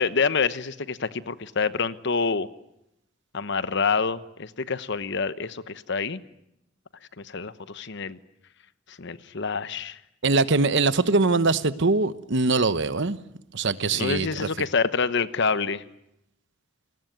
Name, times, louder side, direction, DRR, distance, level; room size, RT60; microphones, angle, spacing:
voice 1, 0.0-2.5 3.3-6.2 7.2-8.2 8.9-10.0 13.9-15.8, left 5 dB, 60° left, 14 dB, 1.0 m, -27 dB
voice 2, 10.2-13.2 13.5-14.7, right 3 dB, 60° right, 14 dB, 1.1 m, -22 dB
29.5 x 20.0 x 9.3 m, 0.83 s
head